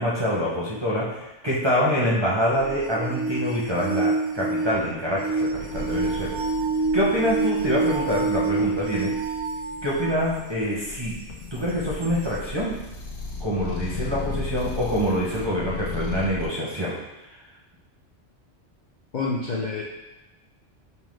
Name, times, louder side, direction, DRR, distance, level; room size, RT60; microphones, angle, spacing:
voice 1, 0.0-6.4 6.9-9.1 9.8-11.2 11.5-12.7 13.4-17.0, equal, 30° right, -6 dB, 0.5 m, -25 dB
sound 1, 2.5-10.2 10.9-11.0 12.0-12.1, right 3 dB, 65° right, 0.7 m, -27 dB
sound 2, 5.7-16.5, left 4 dB, 85° left, 1.0 m, -36 dB
voice 2, 19.1-19.8, left 3 dB, 55° left, -4 dB, 0.5 m, -27 dB
5.5 x 2.2 x 3.1 m, 1.0 s
omnidirectional pair, 1.2 m